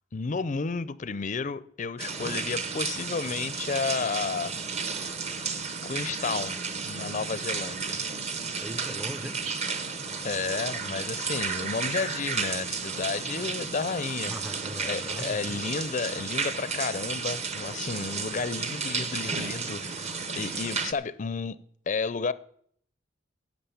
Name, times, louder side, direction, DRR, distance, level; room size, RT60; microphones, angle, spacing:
voice 1, 0.1-4.5 5.8-6.5 6.8-8.0 10.2-14.4 14.8-20.1 20.4-21.6 21.9-22.3, left 4 dB, 40° left, 0.5 m, -32 dB
sound 1, 2.0-20.9, right 5 dB, 35° right, 0.9 m, -33 dB
voice 2, 8.6-9.4 14.2-15.6, equal, 10° right, 0.5 m, -39 dB
11.5 x 8.3 x 7.0 m
head